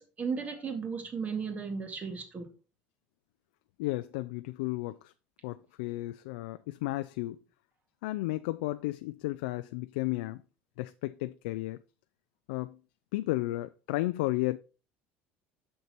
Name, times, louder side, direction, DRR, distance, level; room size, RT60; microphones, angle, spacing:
voice 1, 0.0-2.5, right 5 dB, 30° right, 2.2 m, -35 dB
voice 2, 3.8-5.1 5.4-7.4 8.0-10.4 10.8-11.8 12.5-12.8 13.1-14.6, left 18 dB, 90° left, 0.4 m, -33 dB
6.7 x 6.7 x 4.4 m
supercardioid pair, 115°, 5 cm